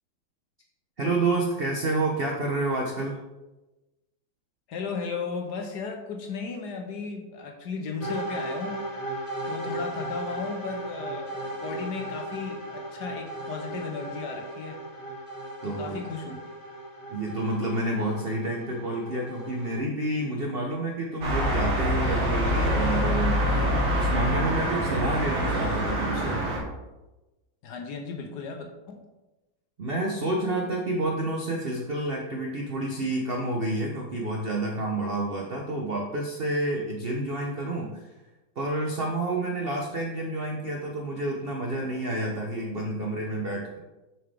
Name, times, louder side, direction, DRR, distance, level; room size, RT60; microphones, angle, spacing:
voice 1, 1.0-3.2 15.6-16.0 17.1-23.4 23.9-26.4 29.8-38.0 38.6-43.8, right 2 dB, 70° right, 0 dB, 0.5 m, -29 dB
voice 2, 4.7-8.7 9.5-14.8 15.6-16.4 27.6-29.0, left 4 dB, 65° left, 3 dB, 1.2 m, -35 dB
sound 1, 8.0-19.8, right 1 dB, 30° left, 1.4 m, -36 dB
sound 2, 21.2-26.6, equal, 90° right, 2.2 m, -25 dB
7.0 x 5.8 x 3.4 m, 1.1 s
omnidirectional pair, 2.2 m